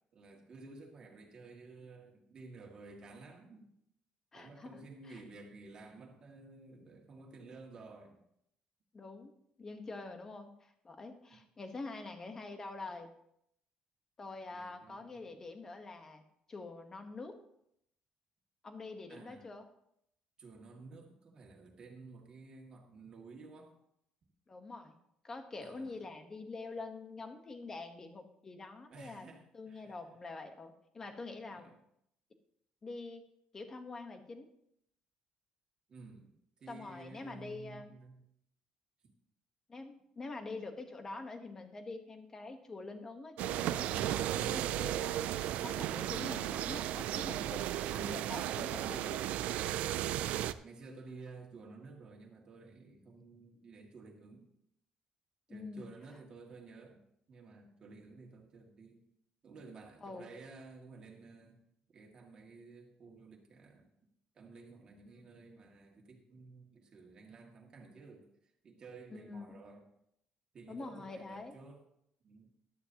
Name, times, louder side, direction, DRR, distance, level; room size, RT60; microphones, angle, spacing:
voice 1, 0.0-3.7 4.3-8.2 11.3-11.4 14.5-15.4 19.1-19.5 20.4-23.8 25.6-25.9 28.9-30.0 31.4-31.8 35.9-38.2 50.0-54.5 55.5-57.0 57.3-59.0 59.4-61.6 61.9-63.9 64.3-69.9 70.5-71.8 72.2-72.5, right 3 dB, 35° right, 0 dB, 2.1 m, -53 dB
voice 2, 4.3-4.8 5.0-5.2 8.9-9.3 9.6-13.1 14.2-16.2 16.5-17.4 18.6-19.6 24.5-24.9 25.2-29.3 29.5-31.7 32.8-33.2 33.5-34.5 36.7-37.9 39.7-45.4 45.6-49.2 55.5-55.9 60.0-60.3 65.1-65.4 69.1-69.5 70.7-71.5, left 3 dB, 20° left, 6 dB, 1.1 m, -46 dB
sound 1, 43.4-50.5, right 12 dB, 75° right, 0.4 m, -35 dB
13.0 x 11.5 x 2.9 m, 0.74 s
cardioid pair, 160°, 2 cm